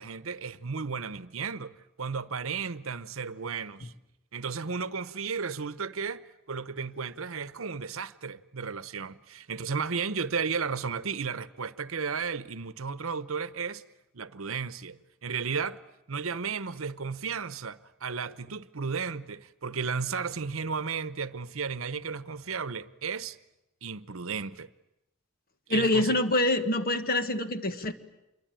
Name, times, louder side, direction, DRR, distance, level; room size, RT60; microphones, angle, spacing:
voice 1, 0.0-3.9 4.3-13.8 14.1-15.8 16.1-23.4 23.8-24.7 25.7-26.2, right 5 dB, 75° right, 0.9 m, -34 dB
voice 2, 25.7-27.9, left 1 dB, 45° left, 1.6 m, -25 dB
27.0 x 23.0 x 9.1 m
head